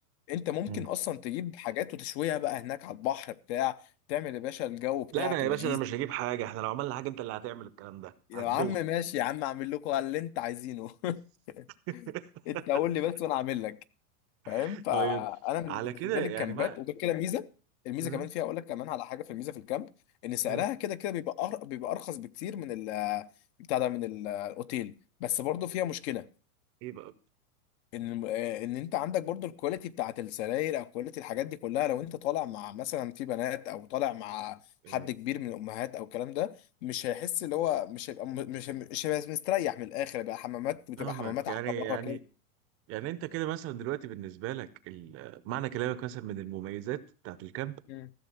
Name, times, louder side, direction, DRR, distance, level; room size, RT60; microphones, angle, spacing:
voice 1, 0.3-3.8 4.1-5.8 8.3-11.2 11.5-11.6 12.5-13.8 14.5-15.8 16.1-17.5 17.8-19.9 20.2-23.3 23.7-24.9 25.2-26.3 27.9-34.6 34.9-36.5 36.8-41.5 41.9-42.2 47.9-48.1, left 13 dB, 50° left, 0.8 m, -33 dB
voice 2, 5.1-8.8 11.9-12.6 14.4-15.3 15.7-16.8 18.0-18.3 20.5-20.6 26.8-27.1 34.8-35.1 41.0-42.2 42.9-47.8, right 14 dB, 30° right, 0.7 m, -35 dB
14.5 x 6.8 x 5.7 m
supercardioid pair, 135°, 44 cm